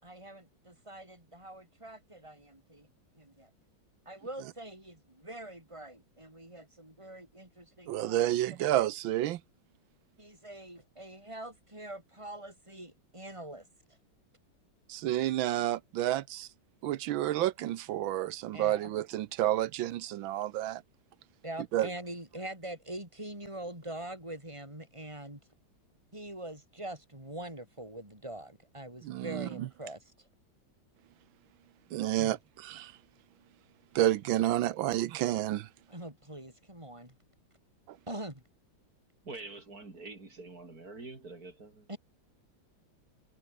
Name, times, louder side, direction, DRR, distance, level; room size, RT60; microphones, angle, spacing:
voice 1, 0.0-2.9 3.2-3.5 4.1-8.4 10.2-13.7 18.5-18.9 21.4-25.4 26.1-30.1 32.2-32.4 35.9-37.1 38.1-38.4 41.9-42.0, right 1 dB, 15° right, 8.1 m, -44 dB
voice 2, 7.9-9.4 14.9-16.5 16.8-20.8 21.7-21.9 29.0-29.7 31.9-32.9 33.9-35.7 37.9-38.0, right 13 dB, 80° right, 1.5 m, -30 dB
voice 3, 39.2-41.9, right 3 dB, 45° right, 4.3 m, -46 dB
omnidirectional pair, 2.2 m